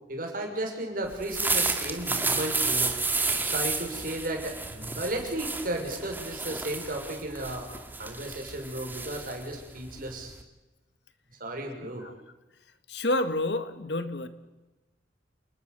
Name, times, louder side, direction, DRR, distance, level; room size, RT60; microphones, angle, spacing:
voice 1, 0.1-3.0 3.4-7.7 8.0-10.3 11.4-12.1, right 1 dB, 50° right, 3 dB, 6.3 m, -34 dB
sound 1, 1.1-10.4, right 3 dB, 10° right, 2.4 m, -31 dB
voice 2, 12.9-14.3, left 1 dB, 70° left, 10 dB, 1.8 m, -29 dB
29.5 x 20.0 x 6.9 m, 1.1 s
head